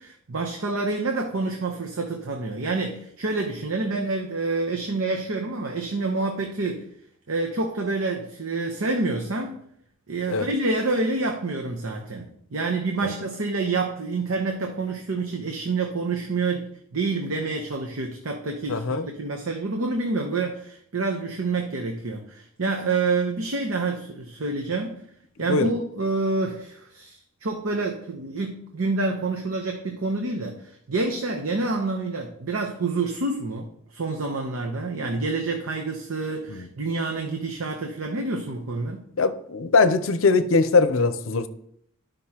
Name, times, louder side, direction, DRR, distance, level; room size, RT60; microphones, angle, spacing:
voice 1, 0.0-6.9 7.3-9.6 10.1-25.0 25.4-39.0, right 3 dB, 75° right, 0.8 m, -28 dB
voice 2, 18.7-19.1 25.5-25.7 36.5-36.7 39.2-41.5, left 4 dB, 70° left, 0.6 m, -21 dB
11.5 x 5.2 x 2.9 m
head